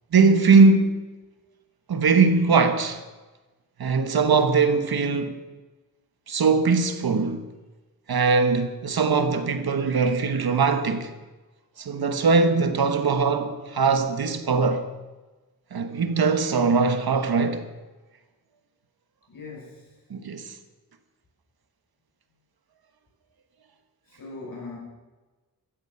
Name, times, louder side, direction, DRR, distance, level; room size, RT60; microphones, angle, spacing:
voice 1, 0.1-1.0 1.9-3.0 3.8-5.4 6.3-7.4 8.1-11.1 11.8-14.9 15.7-17.7 20.1-20.5, right 4 dB, 85° right, 1.3 m, -21 dB
voice 2, 19.3-19.9 24.1-24.8, left 3 dB, 65° left, 6.2 m, -40 dB
15.0 x 13.0 x 5.7 m
wide cardioid pair, 135°, 36 cm